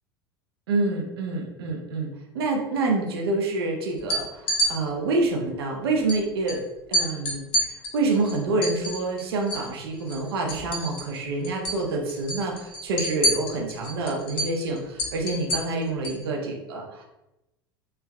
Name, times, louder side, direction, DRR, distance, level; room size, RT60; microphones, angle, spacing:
voice 1, 0.7-6.6 6.9-17.0, right 3 dB, 75° right, 1 dB, 0.7 m, -27 dB
sound 1, 4.0-4.7 6.1-6.2 6.5-6.6 6.9-9.7 10.0-11.2 11.4-11.8 12.1-16.2, right 1 dB, 45° left, 1.0 m, -27 dB
3.4 x 3.3 x 2.3 m, 0.95 s
hypercardioid pair, 75°, 13 cm